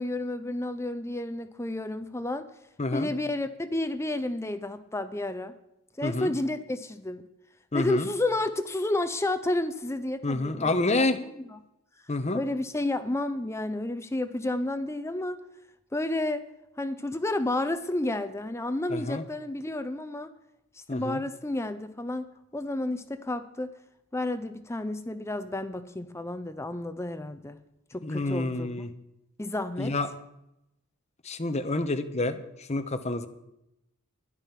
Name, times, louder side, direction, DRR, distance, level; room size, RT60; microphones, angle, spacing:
voice 1, 0.0-2.5 2.9-5.5 6.0-7.2 7.7-11.6 12.3-15.4 15.9-16.4 16.8-20.3 20.7-23.7 24.1-27.6 27.9-28.8 29.4-29.9, left 2 dB, 10° left, 11 dB, 0.5 m, -31 dB
voice 2, 2.8-3.1 6.0-6.3 7.7-8.1 10.2-11.2 12.1-12.4 18.9-19.2 20.9-21.2 28.0-28.9 29.8-30.1 31.2-33.3, left 2 dB, 30° left, 8 dB, 0.9 m, -28 dB
12.5 x 11.0 x 5.8 m, 0.86 s
head